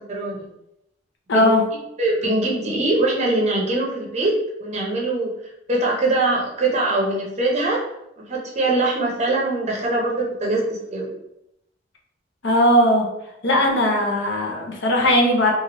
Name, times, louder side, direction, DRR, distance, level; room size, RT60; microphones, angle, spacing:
voice 1, 0.1-0.5 1.3-1.6 2.0-5.3 5.7-7.8 8.2-11.0, right 2 dB, 35° right, -2 dB, 0.6 m, -22 dB
voice 2, 1.3-1.6 12.4-13.1 13.4-15.5, left 1 dB, 70° left, 1 dB, 0.6 m, -18 dB
2.8 x 2.4 x 2.9 m, 0.83 s
head